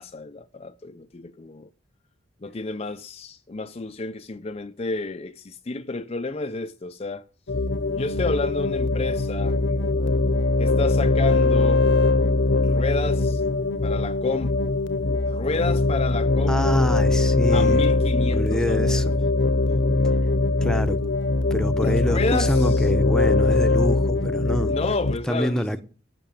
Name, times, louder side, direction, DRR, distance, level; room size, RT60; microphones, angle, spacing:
voice 1, 0.0-1.7 2.4-7.3 7.9-9.6 10.6-11.9 12.6-13.4 13.8-14.8 15.3-16.9 17.5-19.0 21.8-22.9 24.7-25.8, left 3 dB, 35° left, 0.5 m, -30 dB
sound 1, 7.5-25.1, left 2 dB, 70° left, 0.9 m, -21 dB
voice 2, 16.5-17.8 18.3-19.1 19.9-20.0 20.6-21.0 21.5-24.8 25.3-25.8, equal, 5° left, 0.9 m, -26 dB
13.0 x 6.0 x 9.1 m
head